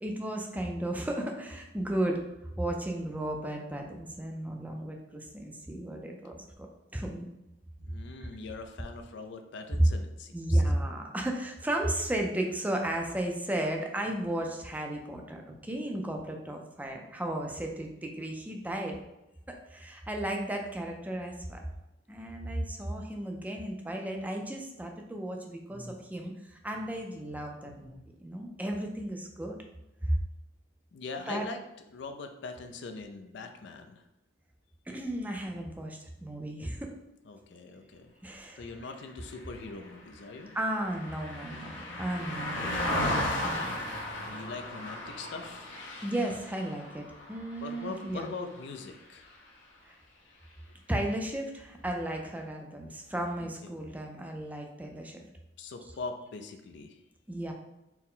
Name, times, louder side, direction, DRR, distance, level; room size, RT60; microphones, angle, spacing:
voice 1, 0.0-2.2 2.6-6.7 6.9-7.3 7.9-8.3 10.3-19.0 19.5-21.6 22.1-29.6 30.0-30.2 31.3-31.5 34.9-36.9 38.2-38.7 40.5-43.0 43.4-43.7 44.3-44.4 46.0-48.3 49.8-50.0 50.9-55.2 57.3-57.5, right 1 dB, 10° right, 2 dB, 0.4 m, -34 dB
voice 2, 7.8-10.6 30.9-31.6 31.9-34.0 37.3-38.1 38.6-40.5 44.3-45.7 47.6-49.3 50.7-50.8 53.4-53.7 55.6-57.0, left 3 dB, 65° left, 6 dB, 0.4 m, -42 dB
Car passing by, 39.3-48.9 49.3-49.5, left 1 dB, 85° left, 0.8 m, -36 dB
4.4 x 2.1 x 3.7 m, 0.92 s
head